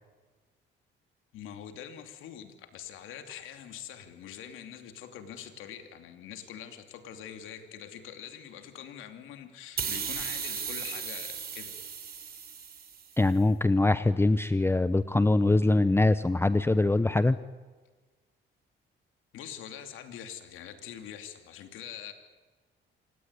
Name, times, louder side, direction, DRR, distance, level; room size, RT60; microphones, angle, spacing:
voice 1, 1.3-11.8 19.3-22.1, left 9 dB, 90° left, 7 dB, 2.8 m, -44 dB
sound 1, 9.8-13.2, right 7 dB, 50° right, 3.3 m, -36 dB
voice 2, 13.2-17.4, left 2 dB, 10° left, 13 dB, 0.8 m, -23 dB
27.5 x 17.5 x 9.7 m, 1.4 s
cardioid pair, 90°, 20 cm